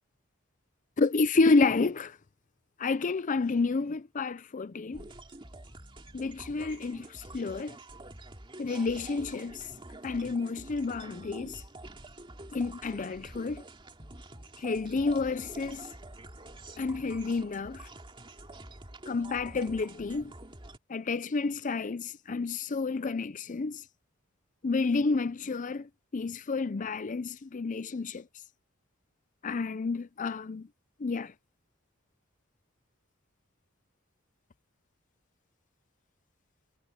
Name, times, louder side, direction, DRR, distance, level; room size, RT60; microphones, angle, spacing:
voice 1, 1.0-2.2 2.8-5.0 6.1-7.8 8.6-9.7 10.0-11.6 12.5-13.6 14.6-15.9 16.8-17.9 19.1-20.3 20.9-23.8 24.6-28.3 29.4-30.7 31.0-31.3, left 3 dB, 40° left, 0.5 m, -30 dB
sound 1, 4.9-20.8, right 2 dB, 25° right, 2.9 m, -47 dB
head